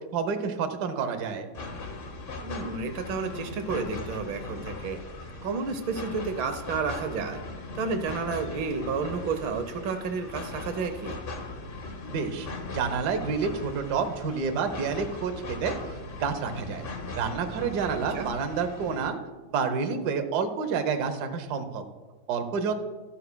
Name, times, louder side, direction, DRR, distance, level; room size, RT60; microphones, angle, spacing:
voice 1, 0.1-1.5 12.0-12.5 12.7-15.8 16.2-16.9 17.1-19.2 19.5-21.8 22.3-22.8, right 5 dB, 65° right, 7 dB, 1.4 m, -29 dB
sound 1, 1.5-19.1, left 2 dB, 45° left, 0.7 m, -39 dB
voice 2, 2.4-5.0 5.4-7.4 7.7-11.2 17.9-18.3, right 4 dB, 85° right, 8 dB, 1.6 m, -31 dB
14.0 x 11.5 x 2.2 m, 1.2 s
omnidirectional pair, 2.1 m